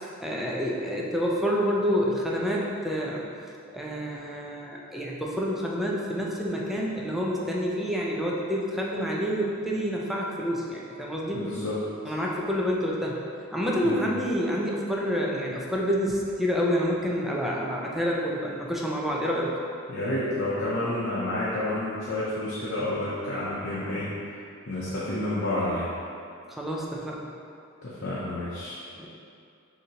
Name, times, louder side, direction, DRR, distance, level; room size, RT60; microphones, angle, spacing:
voice 1, 0.2-3.3 3.7-11.4 12.1-13.2 13.5-19.5 26.5-27.2 29.0-29.1, equal, ahead, -4 dB, 0.5 m, -28 dB
voice 2, 11.3-11.8 13.8-14.0 19.9-24.1 24.7-25.9 27.8-28.8, left 1 dB, 55° left, -9 dB, 0.7 m, -29 dB
6.3 x 2.8 x 2.9 m, 2.5 s
head